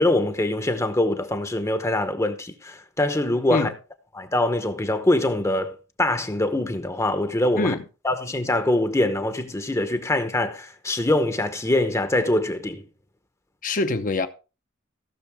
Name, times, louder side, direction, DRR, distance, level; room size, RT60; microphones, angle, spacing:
voice 1, 0.0-3.7 4.1-7.8 8.0-12.8, left 1 dB, 15° left, 0.9 m, -23 dB
voice 2, 13.6-14.3, left 2 dB, 45° left, 0.8 m, -24 dB
16.5 x 6.4 x 3.5 m
head